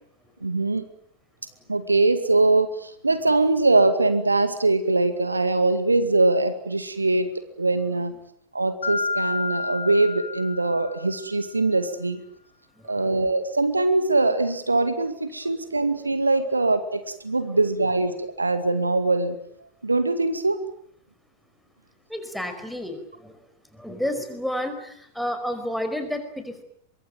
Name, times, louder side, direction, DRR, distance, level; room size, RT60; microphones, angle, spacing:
voice 1, 0.4-0.8 1.7-7.3 7.6-8.1 8.5-12.2 12.9-19.4 19.8-20.6, right 2 dB, 80° right, 10 dB, 2.2 m, -22 dB
Mallet percussion, 8.8-11.4, left 3 dB, 70° left, 4.0 m, -30 dB
voice 2, 12.8-13.1 17.5-17.6 22.1-23.4 23.7-26.6, left 1 dB, ahead, 7 dB, 5.1 m, -31 dB
24.0 x 23.5 x 9.2 m, 0.69 s
figure-of-eight pair, 90°, 0 cm